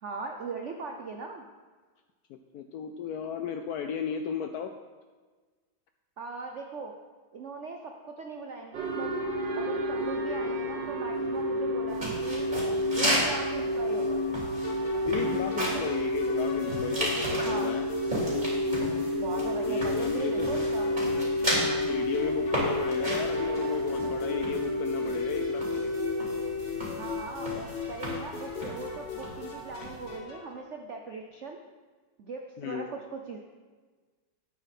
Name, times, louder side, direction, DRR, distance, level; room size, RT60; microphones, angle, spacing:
voice 1, 0.0-1.4 6.2-6.9 7.3-9.2 9.5-12.5 12.9-14.2 15.7-15.9 17.4-17.7 19.2-20.9 27.0-31.6 32.2-33.4, right 4 dB, 85° right, 3 dB, 0.6 m, -39 dB
voice 2, 2.3-4.7 15.0-17.9 19.6-20.5 21.9-25.9 32.6-32.9, left 8 dB, 80° left, 6 dB, 0.8 m, -35 dB
sound 1, 8.7-28.2, left 1 dB, 60° right, 1.9 m, -30 dB
sound 2, 11.9-30.2, right 1 dB, 20° right, 3.2 m, -35 dB
sound 3, 14.6-30.6, left 5 dB, 50° left, 2.0 m, -38 dB
10.5 x 8.7 x 4.2 m, 1.4 s
omnidirectional pair, 2.2 m